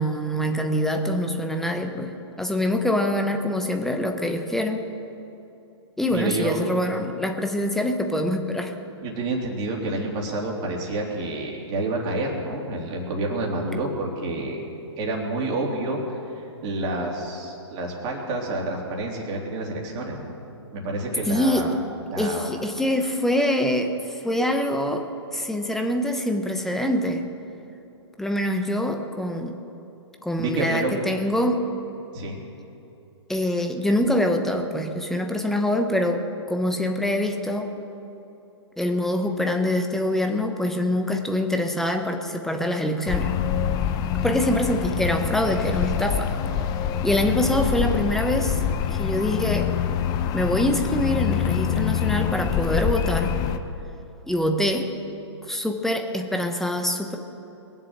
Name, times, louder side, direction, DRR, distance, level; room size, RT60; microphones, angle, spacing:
voice 1, 0.0-4.8 6.0-8.7 21.3-21.7 22.2-27.2 28.2-29.6 30.2-31.7 33.3-37.7 38.8-43.3 44.2-46.3 47.0-48.6 48.9-49.7 50.3-53.4 54.3-54.9 55.4-57.2, left 1 dB, ahead, 4 dB, 1.0 m, -25 dB
voice 2, 6.1-6.6 9.0-14.6 15.0-20.4 20.7-21.7 22.1-22.5 30.4-31.0 32.1-32.4, right 2 dB, 30° right, -1 dB, 3.2 m, -28 dB
sound 1, 43.0-53.6, left 9 dB, 25° left, 0.8 m, -25 dB
21.5 x 7.6 x 7.3 m, 2.9 s
hypercardioid pair, 130°, 15 cm